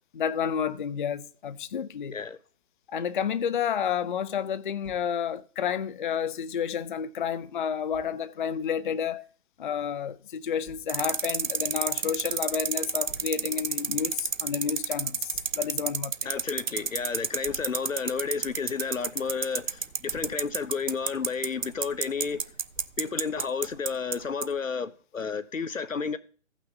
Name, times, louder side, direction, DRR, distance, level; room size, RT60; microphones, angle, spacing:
voice 1, 0.1-2.2 2.9-9.3 9.6-16.3, left 8 dB, 40° left, 0.4 m, -30 dB
Thump thud, 4.8-5.1 7.9-8.1 10.6-10.9 13.1-13.4 15.3-15.6 17.4-17.8 19.8-20.4 22.7-23.1, equal, 20° left, 5.2 m, -50 dB
sound 1, 10.9-24.2 24.4-24.5, right 6 dB, 80° right, 0.7 m, -29 dB
voice 2, 16.2-22.4 23.0-26.2, left 5 dB, 85° left, 0.9 m, -31 dB
15.0 x 5.9 x 4.0 m
figure-of-eight pair, 135°, 38 cm